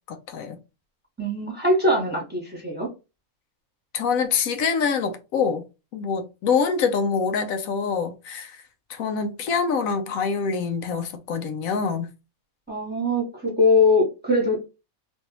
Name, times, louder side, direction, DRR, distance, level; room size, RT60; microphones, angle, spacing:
voice 1, 0.1-0.6 3.9-5.6 5.9-8.6 8.9-12.1, left 5 dB, 80° left, 1.0 m, -25 dB
voice 2, 1.2-2.9 12.7-14.6, left 2 dB, 10° right, 1.2 m, -21 dB
3.3 x 2.6 x 2.8 m
omnidirectional pair, 1.4 m